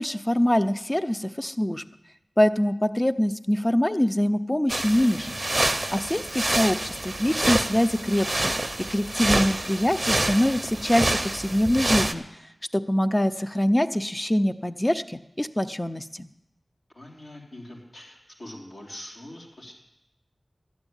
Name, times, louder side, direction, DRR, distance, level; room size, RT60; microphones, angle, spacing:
voice 1, 0.0-1.8 2.4-5.4 5.9-8.5 8.9-12.2 12.7-16.3, left 1 dB, 20° left, 10 dB, 0.6 m, -24 dB
sound 1, 4.7-12.1, right 1 dB, 25° right, 0.6 m, -27 dB
voice 2, 16.9-19.7, left 1 dB, 65° left, -2 dB, 3.5 m, -43 dB
12.0 x 7.1 x 9.9 m, 0.89 s
wide cardioid pair, 85°, 0 cm